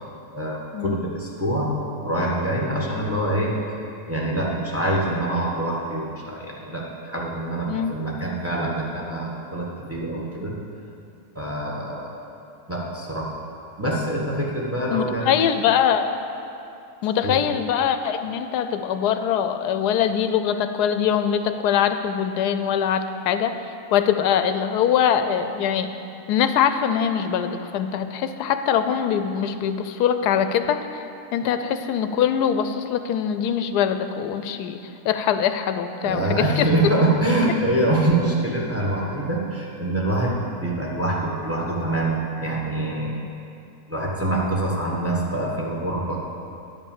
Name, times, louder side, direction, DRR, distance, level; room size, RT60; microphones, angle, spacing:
voice 1, 0.3-1.7 2.0-3.5 4.1-10.5 11.3-12.2 12.7-13.3 13.8-15.4 17.2-17.3 36.0-43.1 43.9-46.2, right 1 dB, 10° right, -3 dB, 1.2 m, -25 dB
voice 2, 14.9-16.2 17.0-23.5 23.9-25.9 26.3-31.0 31.3-34.8 35.0-36.7, left 8 dB, 90° left, 9 dB, 1.1 m, -22 dB
10.5 x 5.3 x 7.3 m, 2.6 s
omnidirectional pair, 1.7 m